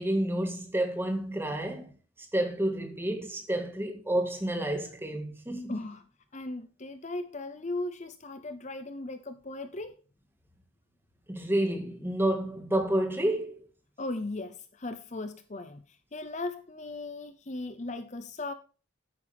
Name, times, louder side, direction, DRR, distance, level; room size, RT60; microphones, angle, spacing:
voice 1, 0.0-1.9 2.2-5.8 11.3-13.6, right 1 dB, 10° right, 1.8 m, -29 dB
voice 2, 5.7-6.0 6.3-10.0 14.0-18.5, left 2 dB, 35° left, 0.7 m, -37 dB
9.9 x 8.6 x 3.4 m
head